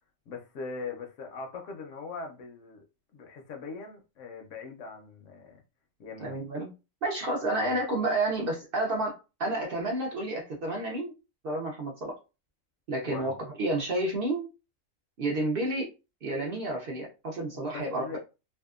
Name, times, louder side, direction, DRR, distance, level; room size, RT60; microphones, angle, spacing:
voice 1, 0.3-2.8 3.1-5.6 6.0-6.4 7.6-7.7 13.1-13.3 17.5-18.2, left 4 dB, 70° left, 0.9 m, -41 dB
voice 2, 6.2-6.7 7.0-11.1 11.4-12.1 12.9-14.5 15.2-15.9 16.2-18.2, right 2 dB, 55° right, 0.7 m, -30 dB
2.7 x 2.3 x 2.4 m
omnidirectional pair, 1.4 m